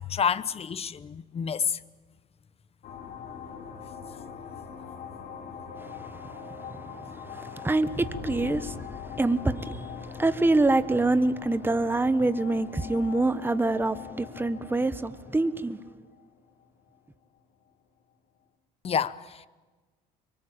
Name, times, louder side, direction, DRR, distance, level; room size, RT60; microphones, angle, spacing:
voice 1, 0.0-1.8 18.8-19.5, left 7 dB, 35° left, 1.0 m, -29 dB
sound 1, 2.8-17.0, left 6 dB, 60° left, 3.2 m, -42 dB
voice 2, 5.8-8.8 9.0-15.8, right 2 dB, 10° right, 1.3 m, -26 dB
25.5 x 23.5 x 8.8 m
cardioid pair, 110°, 17 cm